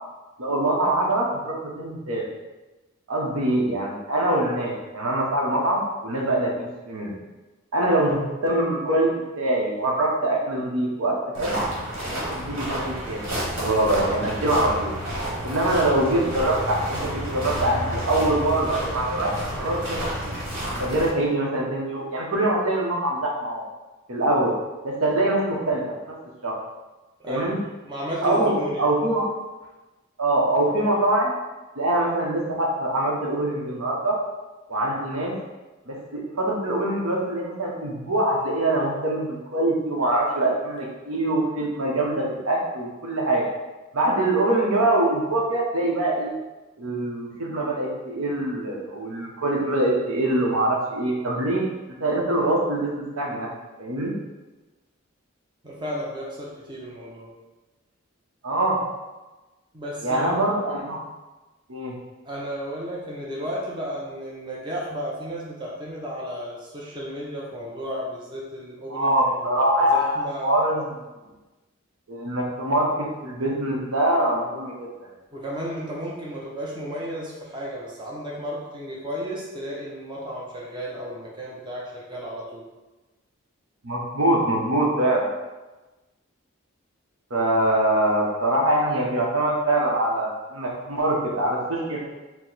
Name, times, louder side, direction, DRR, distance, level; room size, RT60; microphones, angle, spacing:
voice 1, 0.4-2.3 3.1-7.1 7.7-9.1 9.4-11.5 12.0-13.2 13.6-14.9 15.4-19.3 19.6-20.3 20.8-23.6 24.1-24.6 24.8-26.2 26.4-26.6 27.3-27.6 28.2-29.3 30.2-31.3 31.8-34.2 34.7-35.3 35.9-43.4 43.9-46.3 46.8-51.6 52.0-53.5 53.8-54.1 58.4-58.8 60.0-61.0 61.7-62.0 68.9-70.9 72.1-74.7 83.8-85.3 87.3-92.0, right 1 dB, 80° right, -2 dB, 0.8 m, -24 dB
sound 1, 11.3-21.1, equal, 60° right, 1.5 m, -30 dB
voice 2, 27.2-28.9 55.6-57.3 59.7-60.3 60.7-60.8 62.3-70.5 71.2-71.4 75.3-82.6, equal, 20° right, -4 dB, 0.6 m, -33 dB
4.6 x 2.1 x 4.0 m, 1.1 s
head